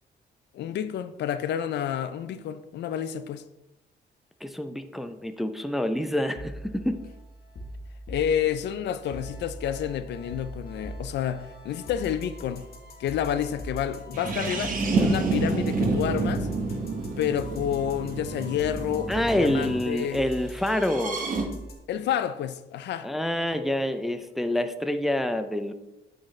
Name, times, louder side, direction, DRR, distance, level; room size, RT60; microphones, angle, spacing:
voice 1, 0.5-3.4 8.1-12.7 13.0-16.5 17.2-20.3 21.9-23.1, left 9 dB, 70° left, 0.4 m, -29 dB
voice 2, 4.4-7.0 19.1-21.2 23.0-25.7, left 1 dB, ahead, 0.4 m, -27 dB
sound 1, 6.3-21.7, equal, 55° left, 1.2 m, -42 dB
sound 2, 14.1-19.8 20.7-21.4, right 3 dB, 45° right, 1.0 m, -28 dB
8.6 x 3.9 x 3.2 m
cardioid pair, 105°, 19 cm